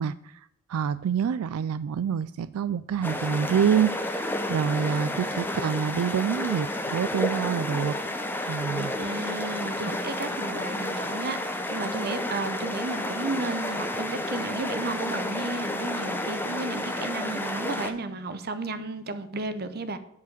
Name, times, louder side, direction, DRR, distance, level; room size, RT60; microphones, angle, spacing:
voice 1, 0.0-8.0 8.5-8.9, right 7 dB, 85° right, 0.3 m, -27 dB
sound 1, 3.0-17.9, left 1 dB, 10° left, 0.8 m, -31 dB
voice 2, 8.8-20.0, right 3 dB, 45° right, 0.8 m, -33 dB
8.2 x 5.0 x 6.6 m
head